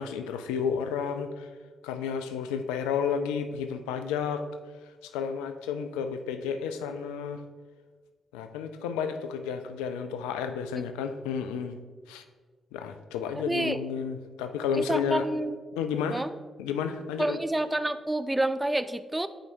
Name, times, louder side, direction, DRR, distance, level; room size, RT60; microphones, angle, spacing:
voice 1, 0.0-1.5 1.8-4.5 5.0-7.4 8.3-11.8 12.1-12.2 12.7-15.2 15.8-16.2 16.6-17.4, left 7 dB, 75° left, 8 dB, 0.3 m, -31 dB
voice 2, 13.5-13.8 14.7-15.6 16.1-16.3 17.2-19.3, right 1 dB, 15° right, 12 dB, 0.3 m, -28 dB
8.9 x 4.6 x 2.6 m, 1.4 s
hypercardioid pair, 40°, 0 cm